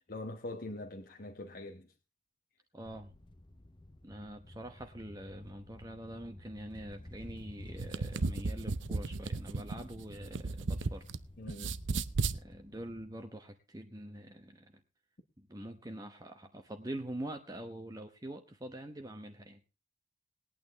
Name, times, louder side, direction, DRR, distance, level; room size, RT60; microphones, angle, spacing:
voice 1, 0.1-1.9 11.4-11.7, left 2 dB, 50° left, 3 dB, 1.1 m, -43 dB
voice 2, 2.7-3.1 4.0-11.0 12.3-14.7 15.4-19.6, right 1 dB, 20° right, 6 dB, 0.9 m, -45 dB
sound 1, 2.8-13.1, left 1 dB, 25° left, 0.7 m, -52 dB
sound 2, 7.6-11.2 11.5-12.4, right 3 dB, 80° right, 0.7 m, -34 dB
20.5 x 9.0 x 3.5 m, 0.28 s
head